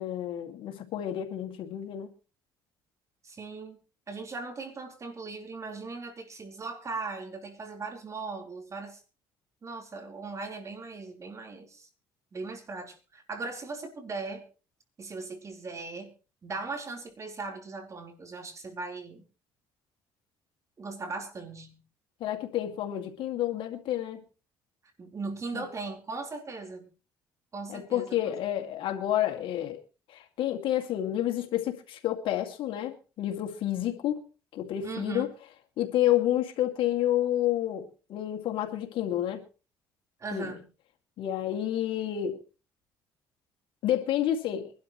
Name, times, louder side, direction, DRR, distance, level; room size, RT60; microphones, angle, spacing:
voice 1, 0.0-2.1 22.2-24.2 25.5-25.6 27.7-29.8 30.1-34.2 34.5-35.3 35.8-39.4 40.3-40.6 41.2-42.4 43.8-44.7, left 12 dB, 70° left, 2.3 m, -29 dB
voice 2, 3.2-3.8 4.1-9.0 9.6-11.9 12.3-14.4 15.0-16.1 16.4-19.2 20.8-21.8 25.0-26.9 27.5-28.3 34.8-35.3 40.2-40.6, right 3 dB, 35° right, 4.1 m, -38 dB
24.0 x 12.0 x 3.2 m
cardioid pair, 90°, 9 cm